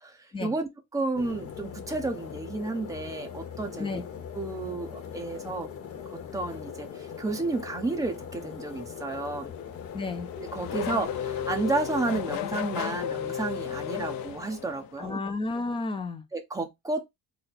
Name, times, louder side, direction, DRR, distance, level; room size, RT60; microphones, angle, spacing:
voice 1, 0.0-4.0 4.3-5.7 6.1-9.5 10.4-15.2 16.3-17.1, right 3 dB, 10° right, 0.7 m, -32 dB
sound 1, 1.1-12.4, left 8 dB, 40° left, 0.8 m, -41 dB
Race car auto racing / Accelerating revving vroom, 9.5-15.1, left 9 dB, 85° left, 0.6 m, -34 dB
voice 2, 9.9-10.3 15.0-16.2, left 3 dB, 15° left, 0.4 m, -32 dB
3.9 x 2.0 x 4.1 m
cardioid pair, 155°, 33 cm